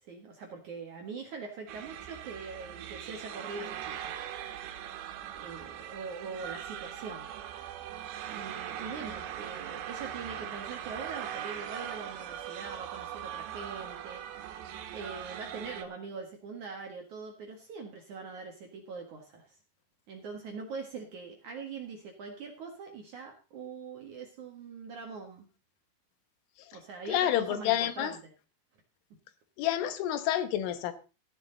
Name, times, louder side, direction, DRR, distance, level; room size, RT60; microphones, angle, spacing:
voice 1, 0.0-4.2 5.3-7.3 8.3-19.6 20.1-25.5 26.7-28.3, right 4 dB, 55° right, 2 dB, 2.2 m, -43 dB
sound 1, 1.7-15.9, right 10 dB, 85° right, 3.8 m, -40 dB
voice 2, 27.1-28.1 29.6-30.9, left 12 dB, 85° left, 11 dB, 3.7 m, -28 dB
15.0 x 11.0 x 4.0 m, 0.32 s
omnidirectional pair, 5.6 m